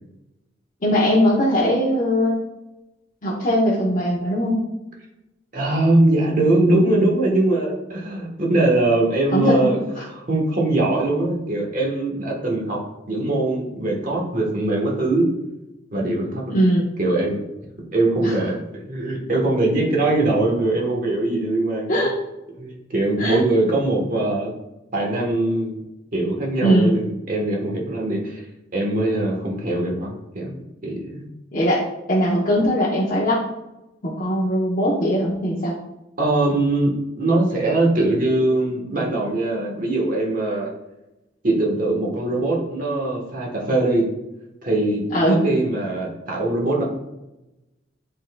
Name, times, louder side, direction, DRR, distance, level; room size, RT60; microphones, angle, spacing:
voice 1, 0.8-2.4 3.2-4.6 9.3-9.7 16.5-16.9 18.2-18.3 21.9-22.2 23.2-23.4 26.6-26.9 31.5-33.4 34.0-35.7 45.1-45.4, equal, 45° left, -6 dB, 1.0 m, -20 dB
voice 2, 5.5-9.8 10.1-12.8 13.1-15.3 15.9-16.6 17.0-17.4 17.9-22.0 22.6-24.5 24.9-25.8 26.1-28.4 28.7-30.5 30.8-31.3 36.2-40.7 41.4-44.1 44.6-46.8, right 2 dB, 45° right, -2 dB, 1.4 m, -21 dB
10.0 x 4.0 x 2.3 m, 0.95 s
head